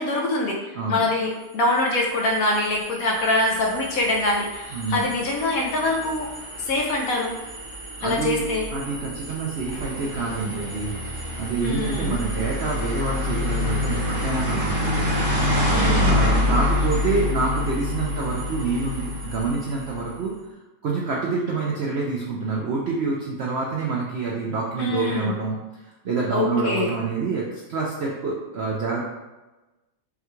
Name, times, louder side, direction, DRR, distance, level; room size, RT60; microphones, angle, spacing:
voice 1, 0.0-6.3 6.6-7.3 8.0-8.6 11.6-12.2 15.7-16.2 24.8-25.3 26.3-26.9, left 2 dB, 65° left, 0 dB, 1.0 m, -24 dB
voice 2, 0.7-1.0 4.7-5.1 8.0-15.1 16.1-20.3 20.8-25.6 25.8-29.0, right 4 dB, 75° right, -3 dB, 0.6 m, -27 dB
sound 1, 1.6-20.1, left 1 dB, 50° right, 1.4 m, -27 dB
5.6 x 2.3 x 3.1 m, 1.1 s
omnidirectional pair, 1.8 m